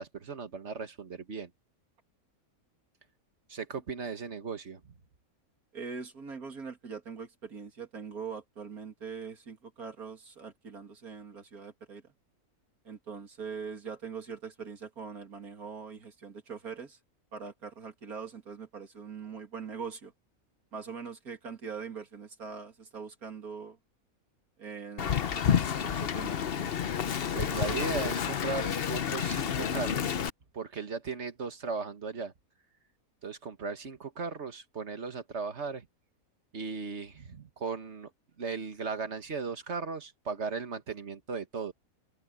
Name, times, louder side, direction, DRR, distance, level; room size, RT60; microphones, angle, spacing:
voice 1, 0.0-1.5 3.5-5.0 27.3-30.2 30.5-32.3 33.2-35.9 36.5-38.1 38.4-41.7, right 5 dB, 50° right, 1.8 m, -37 dB
voice 2, 5.7-12.1 12.8-17.0 17.3-20.1 20.7-23.8 24.6-26.7, right 5 dB, 85° right, 3.1 m, -42 dB
Wind, 25.0-30.3, left 8 dB, 50° left, 0.9 m, -30 dB
omnidirectional pair, 1.5 m